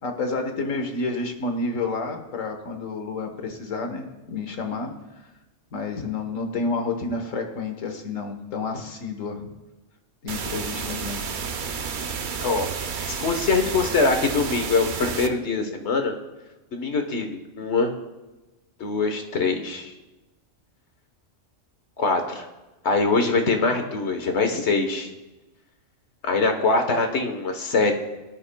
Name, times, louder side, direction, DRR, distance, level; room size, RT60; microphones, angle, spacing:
voice 1, 0.0-4.9 5.7-9.5 10.2-11.2, left 3 dB, 80° left, 5 dB, 1.6 m, -30 dB
sound 1, 10.3-15.3, right 6 dB, 50° right, 0.7 m, -31 dB
voice 2, 13.1-16.1 16.7-17.9 18.8-19.9 22.0-22.5 22.8-25.1 26.2-27.9, left 3 dB, 60° left, 5 dB, 1.4 m, -23 dB
17.5 x 11.5 x 2.3 m, 1.1 s
omnidirectional pair, 1.3 m